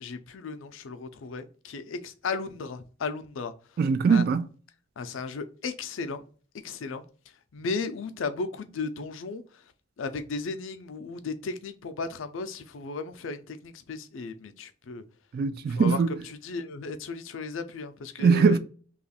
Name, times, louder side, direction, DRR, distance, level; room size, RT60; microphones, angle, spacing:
voice 1, 0.0-3.5 4.1-4.2 5.0-6.2 6.6-7.0 7.5-9.4 10.0-15.0 15.7-18.6, left 4 dB, 70° left, 0.5 m, -35 dB
voice 2, 3.8-4.5 15.3-16.1 18.2-18.6, right 5 dB, 50° right, 0.3 m, -21 dB
2.9 x 2.4 x 4.1 m
head